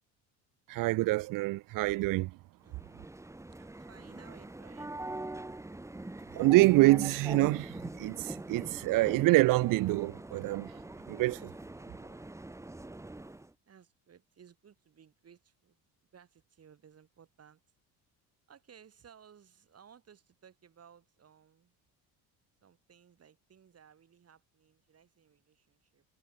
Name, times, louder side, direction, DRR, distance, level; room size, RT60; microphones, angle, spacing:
voice 1, 0.7-2.3 6.3-10.7 11.1-11.5, right 20 dB, 55° right, 0.5 m, -26 dB
voice 2, 2.6-3.0 3.5-5.0 12.0-12.3 13.7-17.6 18.5-21.8 22.6-26.1, right 8 dB, 40° right, 7.6 m, -59 dB
sound 1, 2.7-13.5, right 2 dB, 5° right, 1.7 m, -43 dB
cardioid pair, 110°, 39 cm